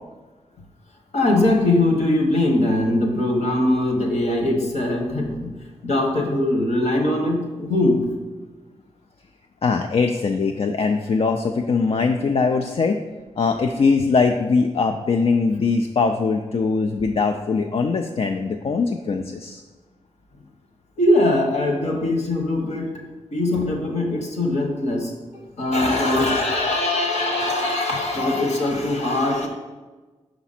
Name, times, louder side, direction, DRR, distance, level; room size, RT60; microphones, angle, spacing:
voice 1, 1.1-5.6 5.8-8.1 21.0-23.0 23.3-29.5, left 1 dB, 70° left, 1 dB, 1.3 m, -21 dB
voice 2, 9.6-13.0 13.4-19.6, left 4 dB, 55° left, 4 dB, 0.4 m, -21 dB
5.9 x 5.0 x 4.2 m, 1.3 s
cardioid pair, 75°, 12 cm